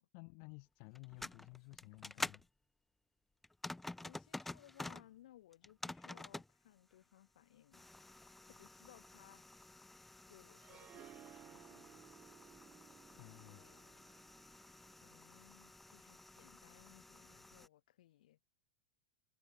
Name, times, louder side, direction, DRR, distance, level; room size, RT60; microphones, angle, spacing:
voice 1, 0.1-2.4 13.2-13.8, left 40 dB or more, 45° left, 1.5 m, -55 dB
sound 1, 1.0-2.5 3.4-5.1 5.5-6.5 7.7-17.7, left 2 dB, 5° left, 0.3 m, -50 dB
voice 2, 4.0-9.4 10.3-12.1 13.1-14.0 14.9-18.4, left 13 dB, 70° left, 3.1 m, -64 dB
Harp, 10.6-15.7, right 11 dB, 20° right, 0.7 m, -60 dB
supercardioid pair, 160°, 4 cm